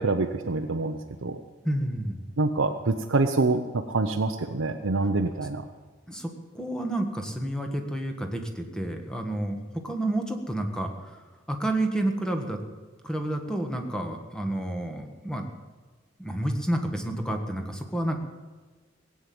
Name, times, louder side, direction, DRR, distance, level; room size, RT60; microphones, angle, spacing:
voice 1, 0.0-1.4 2.4-5.6, right 3 dB, 75° right, 4 dB, 0.8 m, -26 dB
voice 2, 1.6-2.2 6.1-11.2 11.5-12.6 13.0-15.5 16.2-18.2, right 1 dB, 5° left, 4 dB, 1.5 m, -30 dB
18.0 x 8.7 x 7.8 m, 1.3 s
head